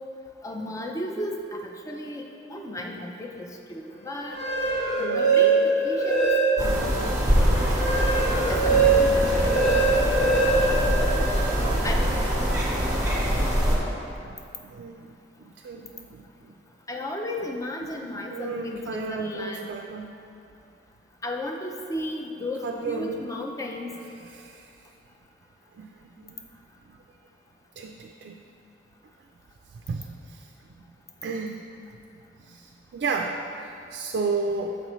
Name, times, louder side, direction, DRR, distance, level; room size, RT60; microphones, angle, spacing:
voice 1, 0.4-2.2 2.5-4.4 5.1-6.3 8.5-9.5 11.8-12.0 16.9-19.7 21.2-23.9, left 1 dB, 20° left, 2 dB, 0.4 m, -34 dB
sound 1, 4.2-6.9 7.3-11.6, right 3 dB, 40° left, 1.4 m, -22 dB
voice 2, 4.6-5.4 6.6-7.3 11.5-12.2 12.5-13.0 13.6-13.9 14.2-15.1 15.4-16.6 18.3-20.1 22.6-23.2 24.2-24.7 25.7-26.5 26.9-27.0 27.8-28.4 29.7-30.5 31.2-31.7 32.4-34.8, right 4 dB, 65° right, 2 dB, 0.3 m, -34 dB
sound 2, 6.6-13.8, equal, 20° right, 1.0 m, -24 dB
7.0 x 5.3 x 3.1 m, 2.6 s
head